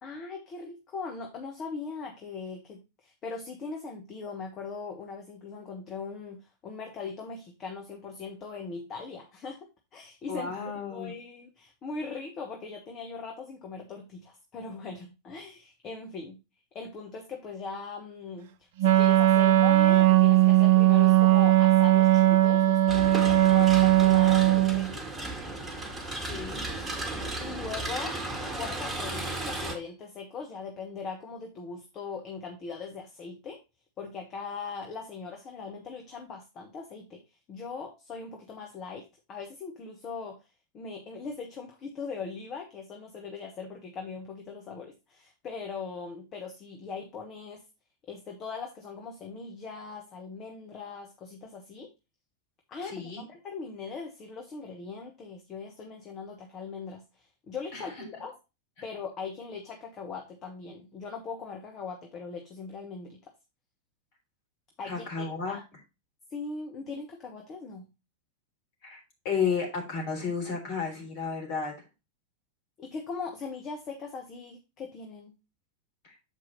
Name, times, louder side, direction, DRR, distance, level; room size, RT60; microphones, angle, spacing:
voice 1, 0.0-6.4 6.6-10.5 10.9-16.4 16.7-25.1 27.4-28.2 28.6-33.6 34.0-37.2 37.5-40.4 40.7-47.6 48.1-51.9 52.7-58.4 58.8-63.2 64.8-65.6 66.3-67.9 72.8-75.4, left 4 dB, 30° left, 2 dB, 1.3 m, -40 dB
voice 2, 10.3-11.1 26.2-26.6 52.8-53.2 57.7-57.9 64.8-65.6 68.8-69.0 69.2-71.7 76.0-76.1, left 5 dB, 50° left, 1 dB, 3.3 m, -32 dB
Wind instrument woodwind instrument, 18.8-24.9, right 14 dB, 50° right, 0.5 m, -19 dB
sound 1, 22.9-29.7, right 2 dB, 15° right, 1.8 m, -35 dB
7.5 x 4.8 x 3.9 m, 0.27 s
figure-of-eight pair, 90°, 0 cm